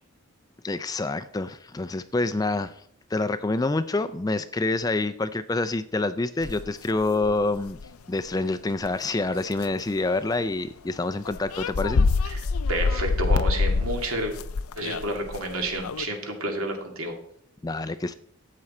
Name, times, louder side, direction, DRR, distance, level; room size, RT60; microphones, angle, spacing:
voice 1, 0.6-2.7 3.1-7.8 8.1-12.1 17.6-18.1, left 2 dB, 15° left, 11 dB, 0.3 m, -27 dB
sound 1, 6.4-7.8 8.3-8.4 8.8-9.1 9.5-9.8 11.0-11.1 11.2-16.0, left 4 dB, 85° left, 0.5 m, -26 dB
voice 2, 12.7-14.3 14.8-17.2, right 1 dB, 75° right, 3 dB, 2.3 m, -30 dB
12.5 x 8.4 x 4.3 m, 0.69 s
head